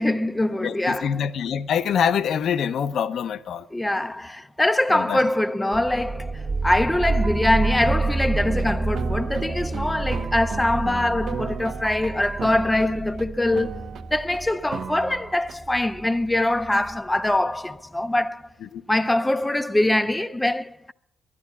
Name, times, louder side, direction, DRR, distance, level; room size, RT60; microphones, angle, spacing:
voice 1, 0.0-1.2 3.7-18.5 18.9-20.9, left 1 dB, 10° left, 0.5 m, -23 dB
voice 2, 0.6-3.7 4.9-5.2 18.7-18.8, left 8 dB, 65° left, 0.6 m, -25 dB
sound 1, 5.7-17.1, right 3 dB, 40° right, 1.5 m, -29 dB
sound 2, 7.2-13.2 13.5-14.4 14.7-15.5, right 7 dB, 65° right, 1.0 m, -36 dB
11.5 x 11.0 x 8.5 m
cardioid pair, 90°, 0 cm